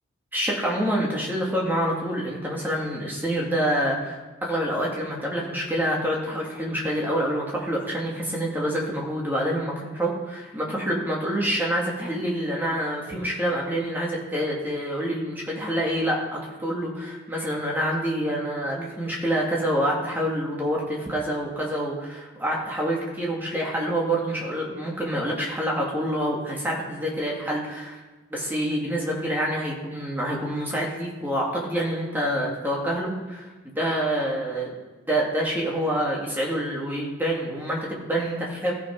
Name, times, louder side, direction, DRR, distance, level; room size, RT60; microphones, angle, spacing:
voice 1, 0.3-28.0 28.3-34.8 35.1-38.7, equal, 10° right, -3 dB, 2.3 m, -27 dB
14.5 x 5.9 x 5.3 m, 1.3 s
head